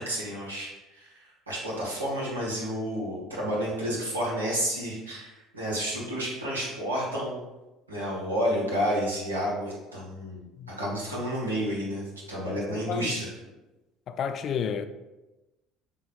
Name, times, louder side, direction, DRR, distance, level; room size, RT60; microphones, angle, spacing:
voice 1, 0.0-7.4 7.9-13.3, equal, 85° right, 1.2 m, -31 dB
voice 2, 12.7-13.2 14.1-14.9, left 7 dB, 45° left, 0.3 m, -31 dB
5.4 x 3.9 x 2.3 m
figure-of-eight pair, 60°, 0 cm